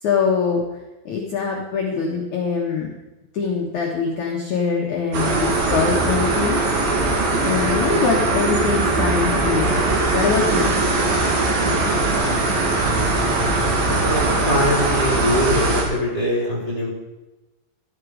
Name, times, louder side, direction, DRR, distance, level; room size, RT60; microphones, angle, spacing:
voice 1, 0.0-0.7 1.1-2.9 3.3-6.6 7.4-9.8 10.1-10.7, left 5 dB, 65° left, 0 dB, 1.9 m, -23 dB
sound 1, 5.1-15.8, right 2 dB, 50° right, 4.0 m, -20 dB
voice 2, 13.8-16.9, equal, 10° right, -5 dB, 3.4 m, -22 dB
14.5 x 12.5 x 5.2 m, 1.1 s
omnidirectional pair, 5.7 m